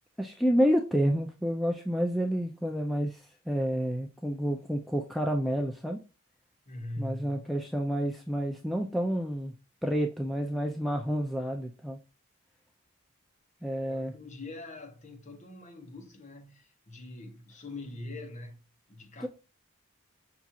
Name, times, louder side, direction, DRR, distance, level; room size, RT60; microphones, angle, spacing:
voice 1, 0.2-6.0 7.0-9.5 9.8-12.0 13.6-14.1 19.2-19.3, equal, ahead, 0.3 m, -29 dB
voice 2, 6.7-7.4 13.8-18.6 18.9-19.3, left 2 dB, 35° left, 0.8 m, -42 dB
5.9 x 2.4 x 2.7 m
head